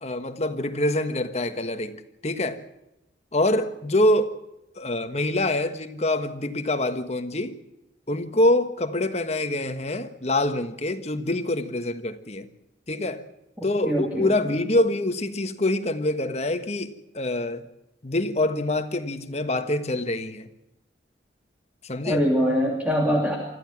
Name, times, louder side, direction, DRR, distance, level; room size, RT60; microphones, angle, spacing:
voice 1, 0.0-2.6 3.3-4.3 4.8-7.6 8.1-12.5 12.9-13.2 13.6-17.6 18.0-20.5 21.8-22.2, left 1 dB, 35° left, 1.4 m, -25 dB
voice 2, 13.9-14.3 22.0-23.4, equal, 10° right, 2.8 m, -23 dB
24.5 x 14.5 x 7.4 m
head